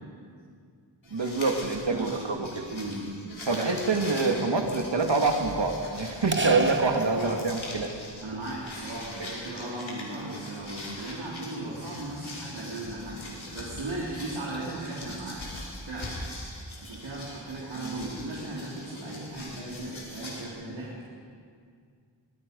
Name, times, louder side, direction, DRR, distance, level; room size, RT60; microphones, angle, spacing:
sound 1, 1.0-20.5, left 1 dB, 90° left, 5.4 m, -42 dB
voice 1, 1.1-2.7 3.5-7.9 9.2-9.3 17.8-18.0, right 3 dB, 70° right, 2 dB, 2.2 m, -26 dB
voice 2, 1.9-2.3 2.7-3.1 7.0-7.4 8.2-16.2 16.8-21.1, right 2 dB, 85° right, -7 dB, 3.8 m, -37 dB
sound 2, 6.3-8.0, right 4 dB, 25° right, 0.9 m, -30 dB
25.5 x 21.0 x 5.4 m, 2.2 s
wide cardioid pair, 60°, 45 cm